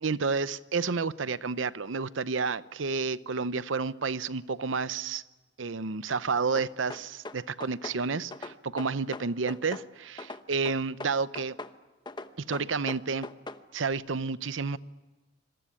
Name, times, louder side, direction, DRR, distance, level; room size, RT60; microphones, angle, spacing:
voice 1, 0.0-5.2 5.6-11.6 12.4-13.3 13.7-14.8, right 4 dB, 85° right, 16 dB, 0.8 m, -30 dB
sound 1, 6.5-8.0 8.3-9.9 10.2-11.8 12.1-13.6, left 2 dB, 25° left, 0.9 m, -40 dB
26.5 x 22.0 x 10.0 m, 1.2 s
head